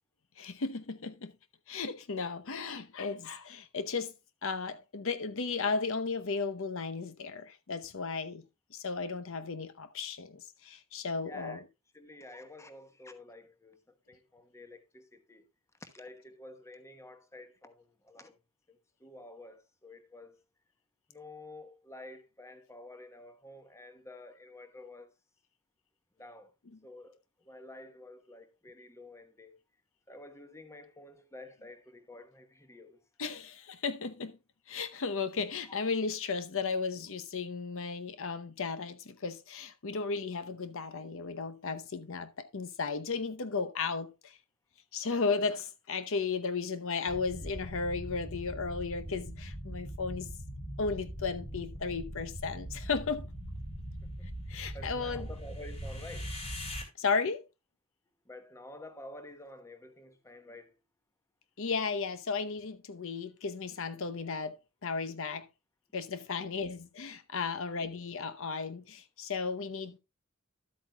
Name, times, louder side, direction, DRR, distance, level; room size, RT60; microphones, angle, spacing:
voice 1, 0.4-1.3 1.7-4.1 4.4-8.5 8.7-11.6 33.2-34.4 34.7-44.4 44.9-50.3 50.8-53.3 54.5-55.3 57.0-57.4 61.6-64.6 64.8-65.5 65.9-70.0, left 4 dB, 65° left, 0.8 m, -35 dB
voice 2, 11.2-11.6 11.9-13.8 14.1-15.4 15.8-18.4 18.7-20.4 21.1-25.1 26.2-26.5 26.8-27.2 27.4-29.6 30.1-33.0 54.0-54.3 54.7-56.3 58.3-60.8, left 2 dB, 15° left, 1.1 m, -50 dB
sound 1, 47.1-56.8, equal, 30° left, 2.7 m, -41 dB
12.5 x 8.6 x 2.3 m
head